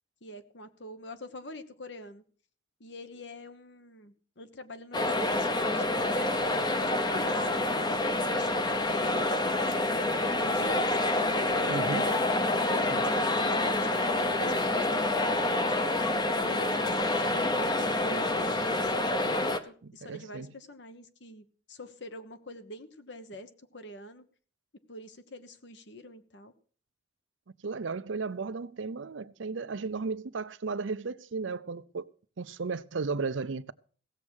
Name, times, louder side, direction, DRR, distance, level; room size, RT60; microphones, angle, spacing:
voice 1, 0.2-2.2 2.8-6.6 7.0-12.0 12.6-15.7 16.4-24.2 24.9-26.5, left 2 dB, 65° left, 1.2 m, -45 dB
sound 1, 4.9-19.6, left 2 dB, 20° left, 0.8 m, -27 dB
voice 2, 11.7-12.1 12.9-13.0 17.3-17.5 19.8-20.5 27.6-32.1 32.4-33.7, right 4 dB, 80° right, 0.6 m, -35 dB
16.5 x 7.4 x 6.4 m
head